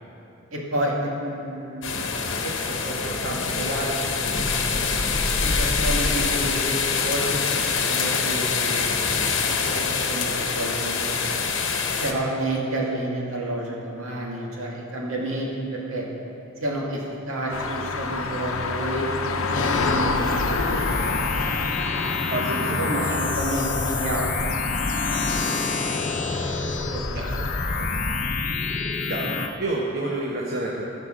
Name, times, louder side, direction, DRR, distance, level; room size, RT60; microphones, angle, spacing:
voice 1, 0.5-5.0 5.4-8.8 9.4-11.3 12.0-16.1 16.6-19.1 19.5-21.7 22.8-24.3 25.0-25.2 25.8-26.0 26.6-27.2 27.7-27.9 28.1-28.3, right 1 dB, 85° right, -3 dB, 2.2 m, -30 dB
sound 1, 1.8-12.1, left 5 dB, 65° left, 1.0 m, -25 dB
sound 2, 17.5-28.3, left 4 dB, 85° left, 0.8 m, -29 dB
sound 3, 19.5-29.5, left 3 dB, 40° left, 0.6 m, -27 dB
voice 2, 22.3-23.4 27.1-27.4 29.1-30.8, right 2 dB, 45° right, -4 dB, 1.2 m, -29 dB
15.5 x 5.6 x 6.4 m, 2.8 s
head